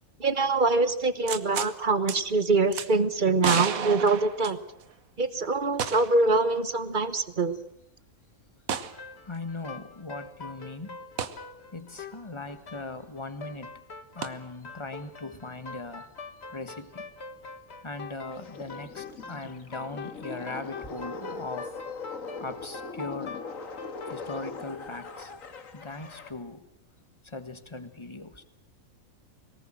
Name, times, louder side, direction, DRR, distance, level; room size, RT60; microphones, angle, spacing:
voice 1, 0.2-4.6 5.2-7.5, right 3 dB, 40° right, 12 dB, 1.4 m, -24 dB
sound 1, 1.3-1.7 2.1-2.2 2.7-2.9 3.4-4.9 5.8-6.2 6.6-6.7 8.7-9.0 11.2-11.4 14.2-14.3, right 7 dB, 90° right, 1.6 m, -31 dB
sound 2, 8.7-24.5, left 4 dB, 50° left, 1.9 m, -43 dB
voice 2, 9.0-11.0 11.7-13.7 14.1-16.1 16.5-17.1 17.8-21.7 22.4-23.4 24.1-25.3 25.7-26.6 27.2-28.4, left 2 dB, 20° left, 10 dB, 1.6 m, -39 dB
sound 3, 18.2-26.3, left 4 dB, 75° left, 1.9 m, -41 dB
22.5 x 19.0 x 7.7 m, 0.77 s
omnidirectional pair, 1.4 m